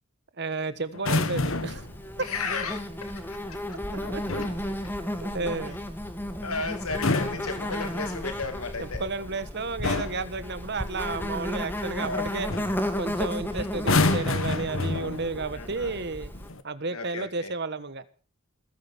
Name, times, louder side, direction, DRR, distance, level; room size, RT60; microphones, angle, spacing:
voice 1, 0.4-1.8 4.1-4.4 5.2-5.8 8.8-12.5 12.9-16.3 16.6-18.0, right 3 dB, 50° right, 1.4 m, -32 dB
sound 1, 0.9-1.9 4.0-4.6 6.8-8.2 9.2-9.4 9.8-10.3 12.0-12.2 12.5-12.8 13.7-15.4 16.3-16.6, left 3 dB, 65° left, 1.5 m, -28 dB
Insect, 1.3-16.5, left 1 dB, 10° left, 2.0 m, -34 dB
voice 2, 2.2-3.2 3.5-3.8 5.7-5.8 6.4-9.0 12.0-12.3 13.6-13.7 15.5-16.0 16.9-17.5, left 4 dB, 85° left, 2.3 m, -34 dB
18.5 x 10.0 x 7.2 m
head